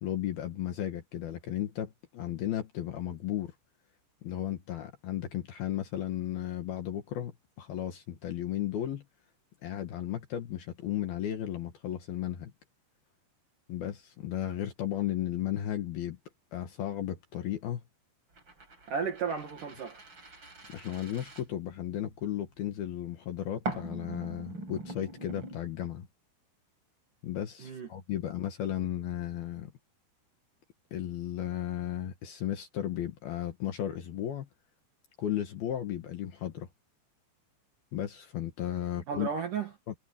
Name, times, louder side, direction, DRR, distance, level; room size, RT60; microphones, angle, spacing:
voice 1, 0.0-3.5 4.2-9.0 9.6-12.5 13.7-16.2 16.5-17.8 20.7-26.1 27.2-29.7 30.9-34.5 35.2-36.7 37.9-39.3 39.9-40.0, left 11 dB, 60° left, 2.9 m, -34 dB
sound 1, 18.4-22.1 23.6-25.6, right 2 dB, 25° right, 5.4 m, -42 dB
voice 2, 18.9-20.0 27.6-27.9 39.1-39.7, right 6 dB, 55° right, 2.7 m, -33 dB
omnidirectional pair, 5.7 m